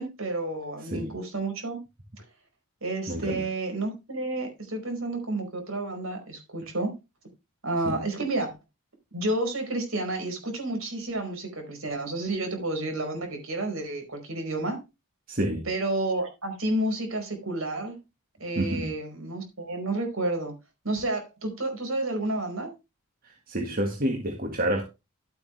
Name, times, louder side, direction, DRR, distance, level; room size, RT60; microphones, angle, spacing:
voice 1, 0.0-1.8 2.2-2.3 2.8-6.9 7.6-8.6 9.1-14.8 15.7-18.0 18.4-20.5 20.8-22.7, right 2 dB, 65° right, 4.9 m, -30 dB
voice 2, 0.8-1.1 3.1-3.5 7.8-8.0 15.3-15.7 18.6-18.9 23.2-24.8, right 1 dB, 40° right, 1.9 m, -29 dB
12.5 x 8.6 x 3.3 m
head